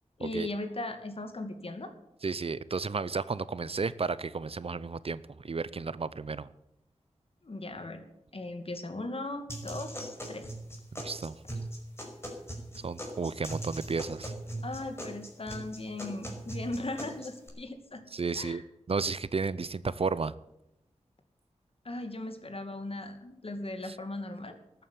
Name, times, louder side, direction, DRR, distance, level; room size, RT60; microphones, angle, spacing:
voice 1, 0.2-1.9 7.4-8.0 8.3-10.5 14.6-18.0 18.3-18.6 21.8-24.6, left 2 dB, 50° left, 2.3 m, -38 dB
voice 2, 2.2-6.5 11.0-11.4 12.8-14.3 18.1-18.6 18.9-20.3 23.9-24.0, right 4 dB, 55° right, 0.7 m, -33 dB
sound 1, 9.5-17.5, right 1 dB, 20° left, 5.2 m, -40 dB
13.5 x 9.2 x 9.5 m
wide cardioid pair, 65°, 12 cm